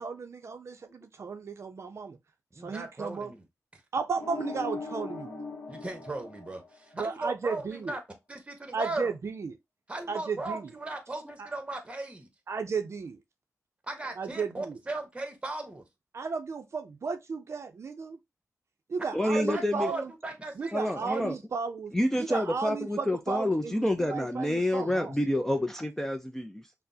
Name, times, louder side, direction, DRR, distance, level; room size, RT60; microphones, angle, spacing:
voice 1, 0.0-2.2 2.6-3.3 3.9-5.3 7.0-7.9 8.7-9.5 10.1-10.7 11.4-11.5 12.5-13.2 14.2-14.8 16.1-18.2 18.9-20.1 20.6-21.9 22.2-25.2, right 5 dB, 55° right, 0.5 m, -34 dB
voice 2, 2.5-3.4 3.7-3.8 5.7-8.0 8.3-9.1 9.9-12.3 13.8-15.8 19.3-21.3, right 2 dB, 20° right, 0.9 m, -37 dB
sound 1, 4.2-7.1, left 3 dB, 35° left, 1.0 m, -39 dB
voice 3, 19.1-19.9 20.7-21.4 21.9-26.8, left 1 dB, 5° left, 0.4 m, -28 dB
5.8 x 2.0 x 2.6 m
wide cardioid pair, 140°, 6 cm